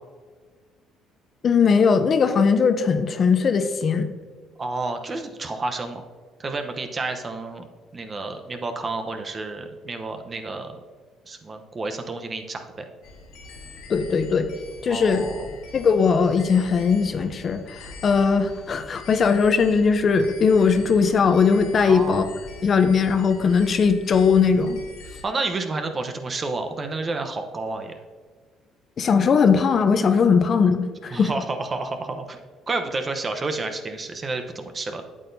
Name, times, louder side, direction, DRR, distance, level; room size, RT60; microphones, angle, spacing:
voice 1, 1.4-4.1 13.9-14.5 14.8-15.2 15.7-22.3 22.6-24.8 29.0-31.3, left 5 dB, 45° left, 9 dB, 0.6 m, -19 dB
voice 2, 4.6-6.0 6.4-10.8 11.3-12.9 14.9-15.5 21.9-22.3 25.2-27.9 31.1-32.4 32.7-35.1, right 3 dB, 30° right, 6 dB, 0.9 m, -30 dB
sound 1, 13.0-25.2, left 3 dB, 85° left, 1.9 m, -43 dB
8.6 x 8.4 x 2.7 m, 1.5 s
cardioid pair, 90°, 0 cm